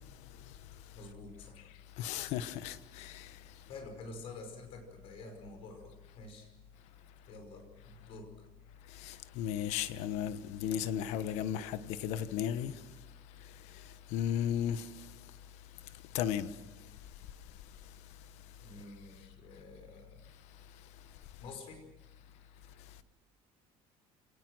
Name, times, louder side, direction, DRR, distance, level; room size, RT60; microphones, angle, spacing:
voice 1, 0.9-1.7 3.7-6.5 7.3-8.5 18.6-20.3 21.4-21.9, left 3 dB, 55° left, 5.5 m, -49 dB
voice 2, 2.0-3.3 9.0-12.7 14.1-14.8 16.1-16.5, left 10 dB, 70° left, 1.2 m, -34 dB
28.0 x 19.0 x 6.3 m
cardioid pair, 150°, 12 cm